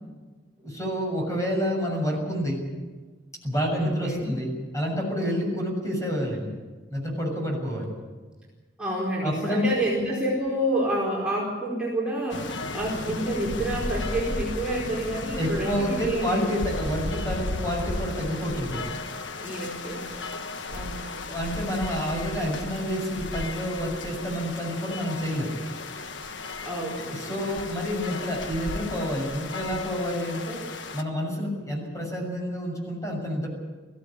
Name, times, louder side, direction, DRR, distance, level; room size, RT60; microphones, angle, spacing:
voice 1, 0.6-2.6 3.4-6.5 6.9-7.9 9.2-9.7 15.3-18.8 21.3-25.5 27.0-30.6 30.9-33.5, equal, 20° left, 0 dB, 6.9 m, -28 dB
voice 2, 3.8-4.3 8.8-16.4 19.4-20.4 20.7-21.3 26.6-27.6, right 1 dB, 5° right, -6 dB, 4.8 m, -29 dB
sound 1, 12.3-31.0, left 2 dB, 80° left, 1.4 m, -35 dB
22.0 x 16.5 x 8.7 m, 1.3 s
head